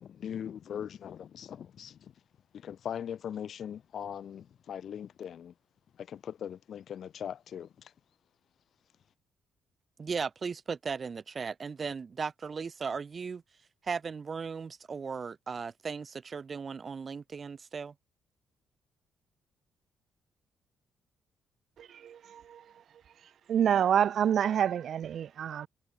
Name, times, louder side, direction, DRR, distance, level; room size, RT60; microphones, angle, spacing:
voice 1, 0.0-2.0 2.6-5.5 6.1-7.7, left 9 dB, 60° left, 0.6 m, -40 dB
voice 2, 10.0-13.4 13.8-17.9, right 5 dB, 40° right, 1.0 m, -37 dB
voice 3, 23.5-25.7, right 9 dB, 60° right, 0.3 m, -26 dB
cardioid pair, 90°, 0 cm